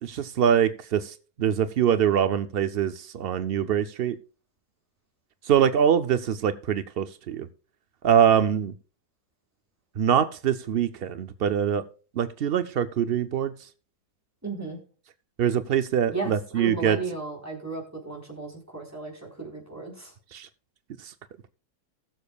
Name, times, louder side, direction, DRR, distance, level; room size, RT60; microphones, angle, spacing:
voice 1, 0.0-4.2 5.5-7.5 8.0-8.7 10.0-11.8 12.2-13.5 15.4-17.0 20.3-20.5 21.0-21.1, right 9 dB, 80° right, 11 dB, 0.5 m, -24 dB
voice 2, 14.4-14.8 16.1-20.1, right 3 dB, 10° right, -1 dB, 3.7 m, -35 dB
19.5 x 7.0 x 2.3 m, 0.37 s
omnidirectional pair, 1.7 m